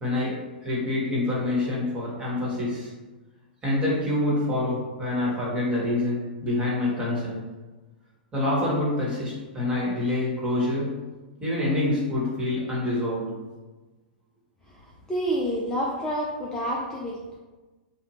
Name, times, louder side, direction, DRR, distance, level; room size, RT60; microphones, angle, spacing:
voice 1, 0.0-2.9 3.6-7.4 8.3-10.9 11.4-13.3, left 2 dB, 20° right, -6 dB, 1.1 m, -26 dB
voice 2, 14.7-17.4, equal, 10° left, -4 dB, 0.3 m, -29 dB
2.6 x 2.1 x 2.9 m, 1.2 s
hypercardioid pair, 115°, 5 cm